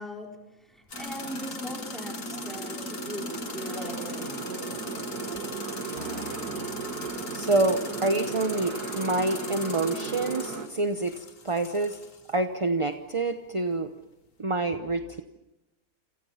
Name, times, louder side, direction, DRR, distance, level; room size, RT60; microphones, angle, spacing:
voice 1, 0.0-4.5, left 1 dB, ahead, 1 dB, 4.5 m, -40 dB
sound 1, 0.9-12.4, left 4 dB, 55° left, 2.3 m, -41 dB
Motorcycle, 0.9-10.7, right 4 dB, 85° right, 2.5 m, -36 dB
Piano, 6.0-8.4, right 3 dB, 45° right, 1.7 m, -45 dB
voice 2, 7.3-12.0 12.3-13.9 14.4-15.2, right 2 dB, 25° right, 7 dB, 0.8 m, -27 dB
28.5 x 28.0 x 5.8 m, 0.99 s
omnidirectional pair, 1.6 m